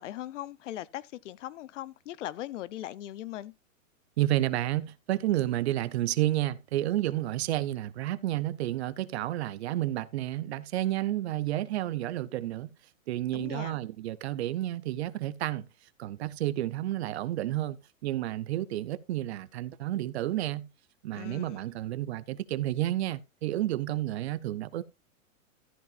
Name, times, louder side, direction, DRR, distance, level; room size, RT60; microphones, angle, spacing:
voice 1, 0.0-3.5 13.3-13.8 21.1-21.7, left 13 dB, 65° left, 0.7 m, -39 dB
voice 2, 4.2-12.7 13.1-15.7 16.0-17.8 18.0-20.7 21.0-24.8, right 14 dB, 55° right, 0.7 m, -30 dB
14.0 x 8.4 x 2.5 m
hypercardioid pair, 155°, 40 cm